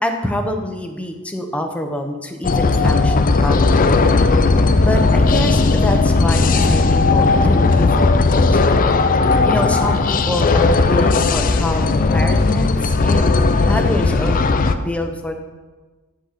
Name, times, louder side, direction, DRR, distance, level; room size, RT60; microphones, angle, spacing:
voice 1, 0.0-4.0 4.8-9.0 9.5-13.4 13.6-14.4 14.8-15.4, left 1 dB, 5° left, 4 dB, 0.8 m, -26 dB
sound 1, 2.4-14.8, left 3 dB, 40° left, 0.5 m, -16 dB
10.5 x 6.3 x 4.2 m, 1.3 s
head